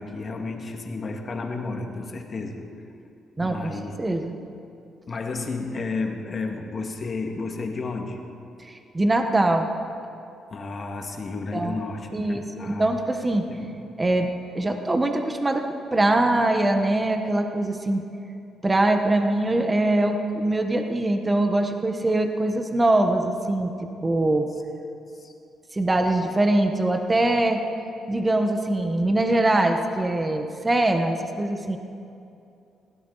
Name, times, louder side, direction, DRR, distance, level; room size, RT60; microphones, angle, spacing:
voice 1, 0.0-2.6 3.4-4.0 5.1-8.2 10.5-12.9 13.5-13.7 25.2-25.3, left 3 dB, 40° left, 3 dB, 2.0 m, -32 dB
voice 2, 3.4-3.7 4.0-4.3 8.6-9.7 11.5-11.8 12.1-13.5 14.0-18.0 18.6-23.7 24.0-24.5 25.7-27.6 28.1-31.8, right 1 dB, 20° right, 5 dB, 1.3 m, -23 dB
21.5 x 16.0 x 4.1 m, 2.6 s
cardioid pair, 90°, 0 cm